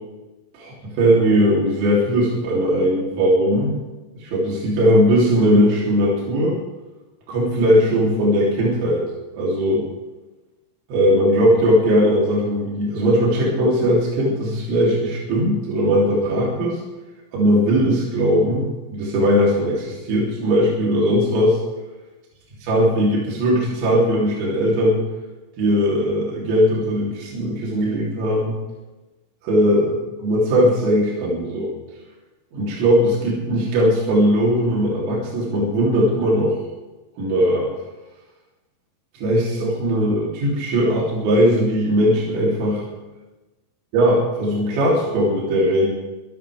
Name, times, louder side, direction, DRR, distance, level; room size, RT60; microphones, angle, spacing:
voice 1, 0.5-3.8 4.2-6.6 7.3-9.1 9.3-9.9 10.9-16.8 17.3-21.6 22.6-25.0 25.6-28.5 29.4-31.7 32.5-36.6 37.2-37.7 39.2-42.8 43.9-45.9, equal, 65° right, -5 dB, 5.6 m, -19 dB
23.5 x 13.5 x 3.5 m, 1.1 s
omnidirectional pair, 5.8 m